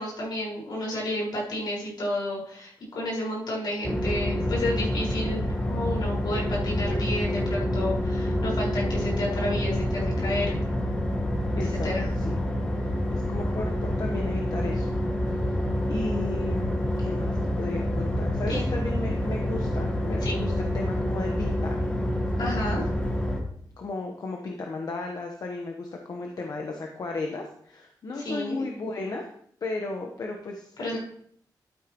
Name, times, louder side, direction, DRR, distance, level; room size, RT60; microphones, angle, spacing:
voice 1, 0.0-10.6 11.7-12.1 18.5-18.6 20.2-20.4 22.4-22.9 28.2-28.6 30.8-31.0, left 1 dB, 75° left, -4 dB, 5.0 m, -31 dB
sound 1, 3.8-23.4, left 1 dB, 15° left, 1.4 m, -27 dB
voice 2, 11.6-11.9 12.2-12.4 12.8-14.9 15.5-15.6 15.9-21.8 23.8-29.3 29.6-31.0, left 3 dB, 55° left, 2 dB, 1.1 m, -35 dB
12.0 x 9.1 x 3.1 m, 0.62 s
wide cardioid pair, 165°, 8 cm